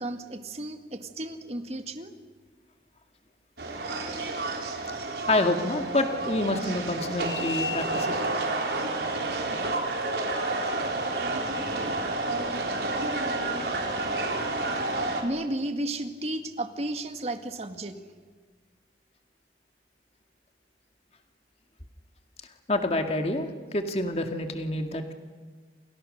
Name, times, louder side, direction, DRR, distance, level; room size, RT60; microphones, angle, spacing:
voice 1, 0.0-2.1 15.2-18.0, right 1 dB, 35° right, 7 dB, 1.9 m, -33 dB
sound 1, 3.6-15.2, right 2 dB, 70° right, 4.3 m, -30 dB
voice 2, 5.3-8.2 22.7-25.1, left 2 dB, 35° left, 5 dB, 2.0 m, -27 dB
29.0 x 28.0 x 6.6 m, 1.5 s
head